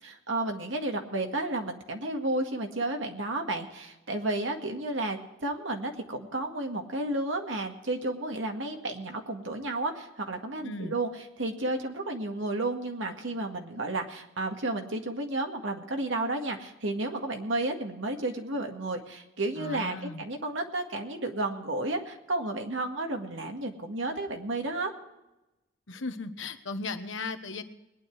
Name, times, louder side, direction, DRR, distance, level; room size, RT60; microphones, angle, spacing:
voice 1, 0.0-11.1 11.4-24.9, right 2 dB, 80° right, 3 dB, 2.0 m, -32 dB
voice 2, 10.6-10.9 19.6-20.2 25.9-27.6, left 3 dB, 80° left, 8 dB, 1.2 m, -36 dB
21.0 x 10.0 x 4.7 m, 0.96 s
head